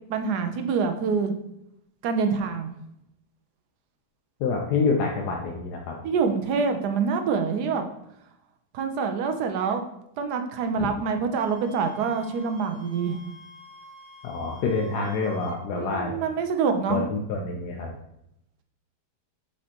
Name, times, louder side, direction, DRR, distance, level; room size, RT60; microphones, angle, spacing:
voice 1, 0.1-1.3 2.0-2.7 6.0-7.9 8.7-9.8 10.2-13.2 15.7-17.0, right 5 dB, 75° right, 7 dB, 1.2 m, -26 dB
voice 2, 4.4-6.0 10.8-10.9 14.2-16.2 16.9-17.9, left 4 dB, 75° left, 0 dB, 1.2 m, -27 dB
Wind instrument woodwind instrument, 11.3-15.6, equal, 35° right, 1.2 m, -48 dB
7.4 x 4.4 x 2.9 m, 0.79 s
omnidirectional pair, 1.8 m